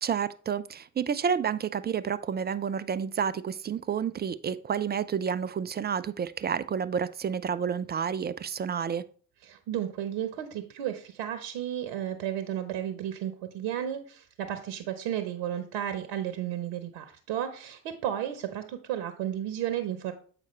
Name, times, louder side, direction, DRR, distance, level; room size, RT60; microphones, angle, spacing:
voice 1, 0.0-9.0, right 7 dB, 25° right, 0.4 m, -30 dB
voice 2, 9.4-20.1, right 10 dB, 70° right, 0.9 m, -33 dB
7.6 x 4.9 x 3.1 m
hypercardioid pair, 55°, 40 cm